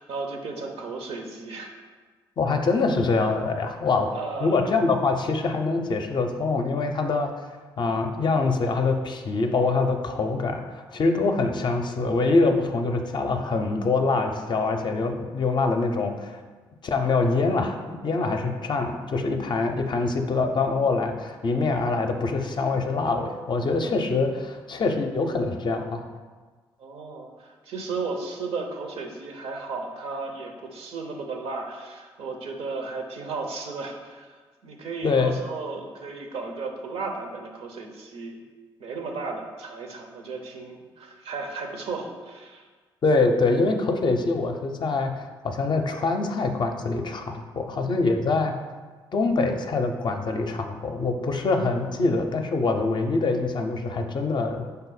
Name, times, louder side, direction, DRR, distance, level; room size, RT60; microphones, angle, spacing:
voice 1, 0.0-1.7 4.1-4.6 26.8-38.4 38.8-42.7, right 4 dB, 70° right, 2 dB, 0.6 m, -34 dB
voice 2, 2.4-4.1 4.4-7.3 7.8-16.4 16.8-26.1 35.0-35.3 43.0-48.5 49.1-54.6, left 3 dB, 45° left, 5 dB, 0.5 m, -24 dB
5.3 x 2.0 x 4.0 m, 1.4 s
hypercardioid pair, 45°, 10 cm